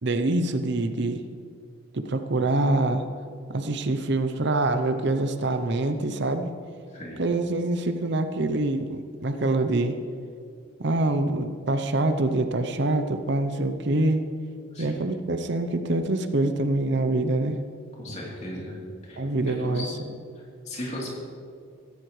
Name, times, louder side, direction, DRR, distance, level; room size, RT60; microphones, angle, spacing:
voice 1, 0.0-1.2 1.9-3.0 3.5-6.5 7.2-10.0 10.8-14.2 14.8-17.6 19.2-19.9, right 2 dB, 55° right, 8 dB, 0.7 m, -25 dB
voice 2, 6.9-7.2 14.7-15.1 18.0-18.8 19.0-20.0 20.3-21.1, left 1 dB, 35° left, -4 dB, 3.3 m, -37 dB
16.5 x 15.0 x 3.2 m, 2.3 s
head